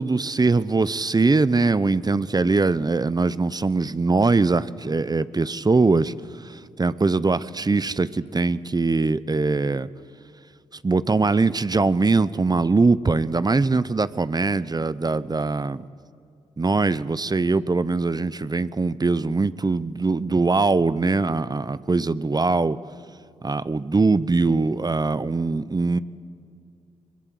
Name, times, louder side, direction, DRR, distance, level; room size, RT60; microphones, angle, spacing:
voice 1, 0.0-6.1 6.4-9.9 10.8-15.8 16.6-22.8 23.4-26.0, right 3 dB, 30° right, 16 dB, 0.8 m, -22 dB
21.5 x 21.5 x 7.8 m, 2.4 s
supercardioid pair, 50°, 14 cm